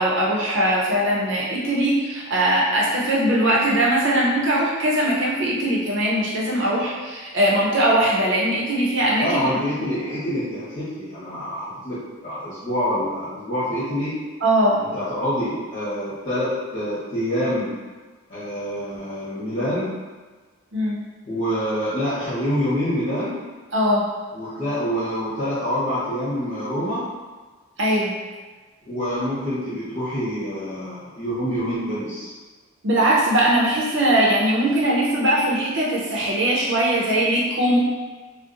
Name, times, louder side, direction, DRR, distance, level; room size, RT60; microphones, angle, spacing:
voice 1, 0.0-9.6 14.4-14.8 20.7-21.0 23.7-24.0 27.8-28.1 32.8-37.8, right 1 dB, 65° right, -4 dB, 0.6 m, -20 dB
voice 2, 9.2-14.1 14.8-17.7 18.3-19.9 21.3-23.4 24.3-27.0 28.9-32.3, equal, 45° left, -13 dB, 1.1 m, -26 dB
2.7 x 2.0 x 2.5 m, 1.3 s
head